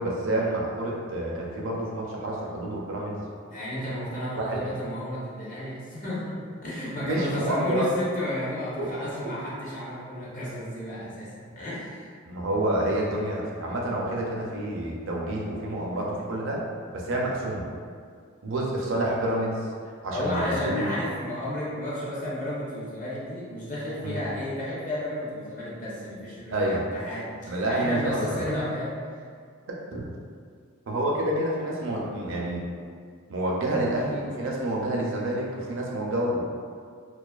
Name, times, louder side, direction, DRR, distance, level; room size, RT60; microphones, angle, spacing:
voice 1, 0.0-3.2 4.4-4.6 7.0-7.9 8.8-8.9 12.3-16.6 16.9-17.6 18.4-20.9 24.0-24.2 26.5-26.8 27.5-28.5 29.9-30.1 30.9-32.6 33.3-36.4, right 1 dB, 60° right, -3 dB, 0.4 m, -28 dB
voice 2, 3.5-12.1 20.1-29.0, left 1 dB, 40° left, -8 dB, 0.6 m, -32 dB
2.3 x 2.3 x 2.3 m, 2.1 s
head